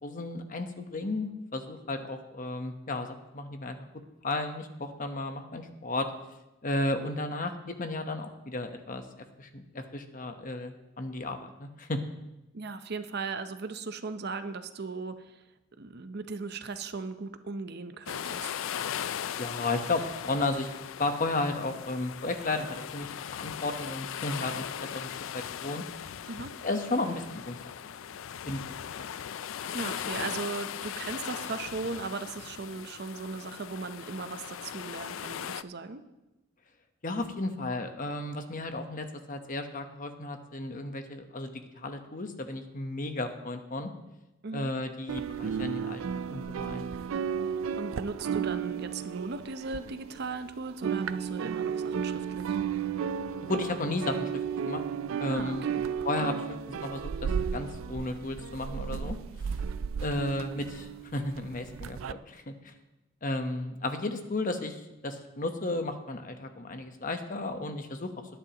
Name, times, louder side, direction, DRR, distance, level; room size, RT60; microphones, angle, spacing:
voice 1, 0.0-3.8 4.2-6.1 6.6-12.0 19.4-20.7 21.0-25.8 26.6-27.9 28.5-29.0 37.0-43.9 44.5-46.9 53.4-54.3 54.7-54.8 55.2-55.7 56.0-59.2 60.0-62.7 63.2-68.1, left 2 dB, 40° left, 6 dB, 1.0 m, -34 dB
voice 2, 12.5-15.3 15.8-18.5 26.3-26.5 29.7-36.0 44.4-44.7 47.8-52.6 55.3-55.8, right 4 dB, 55° right, 10 dB, 0.7 m, -37 dB
sound 1, 18.1-35.6, left 9 dB, 80° left, 0.4 m, -38 dB
sound 2, 45.1-50.4 50.7-62.1, right 7 dB, 85° right, 0.4 m, -33 dB
19.5 x 10.0 x 3.0 m, 0.98 s
head